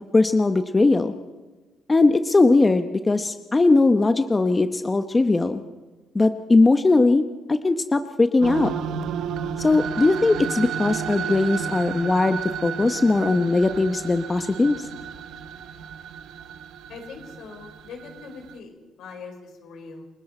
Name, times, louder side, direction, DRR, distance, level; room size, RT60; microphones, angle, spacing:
voice 1, 0.1-1.1 1.9-5.6 6.1-7.2 7.5-8.7 9.6-14.9, left 3 dB, 25° left, 8 dB, 1.0 m, -19 dB
sound 1, 8.4-18.5, right 8 dB, 80° right, 0.9 m, -32 dB
voice 2, 16.9-20.1, left 4 dB, 75° left, 3 dB, 4.8 m, -41 dB
29.5 x 20.0 x 4.4 m, 1.2 s
cardioid pair, 90°, 0 cm